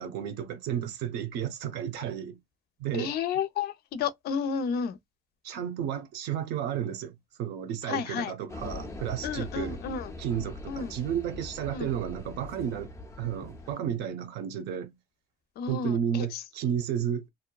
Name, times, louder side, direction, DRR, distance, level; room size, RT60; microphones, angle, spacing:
voice 1, 0.0-2.4 2.8-3.1 5.4-9.8 10.2-12.9 13.2-15.0 15.7-17.3, right 9 dB, 85° right, 0.7 m, -32 dB
voice 2, 2.9-5.0 7.9-8.3 9.2-10.1 10.7-10.9 11.7-11.9 15.6-16.4, left 7 dB, 70° left, 0.6 m, -32 dB
sound 1, 8.5-13.7, left 2 dB, 15° left, 0.6 m, -42 dB
2.7 x 2.1 x 2.2 m
cardioid pair, 110°, 17 cm